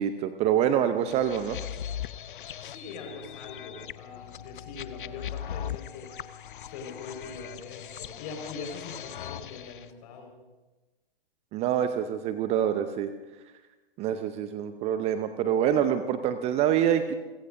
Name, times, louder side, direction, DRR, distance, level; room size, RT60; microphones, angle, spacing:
voice 1, 0.0-1.6 11.5-13.1 14.0-17.1, right 9 dB, 20° right, 10 dB, 0.6 m, -26 dB
sound 1, 1.1-9.9, left 10 dB, 60° left, 0.8 m, -39 dB
voice 2, 2.2-6.1 6.6-10.3, left 4 dB, 45° left, 3 dB, 4.8 m, -42 dB
30.0 x 16.0 x 2.6 m, 1.2 s
figure-of-eight pair, 115°, 29 cm